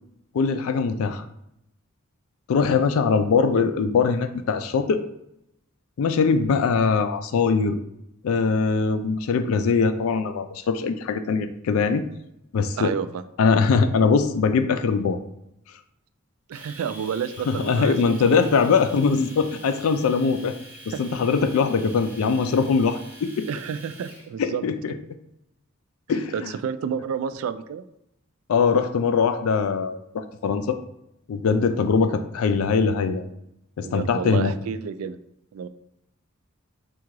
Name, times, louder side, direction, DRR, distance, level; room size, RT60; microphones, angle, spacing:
voice 1, 0.3-1.2 2.5-5.0 6.0-7.8 8.2-12.0 12.5-12.9 13.4-15.2 17.5-20.5 21.0-23.5 24.4-25.0 26.1-26.5 28.5-30.8 31.3-33.2 33.8-34.5, left 5 dB, 80° left, 9 dB, 0.4 m, -22 dB
voice 2, 3.0-3.7 12.8-13.2 16.5-18.6 20.9-21.0 23.5-24.6 26.3-27.9 33.8-35.2 35.5-35.7, right 7 dB, 75° right, 12 dB, 0.3 m, -30 dB
Domestic sounds home sounds, 16.5-24.3, equal, 10° right, 0.6 m, -45 dB
3.7 x 2.4 x 4.6 m, 0.81 s
head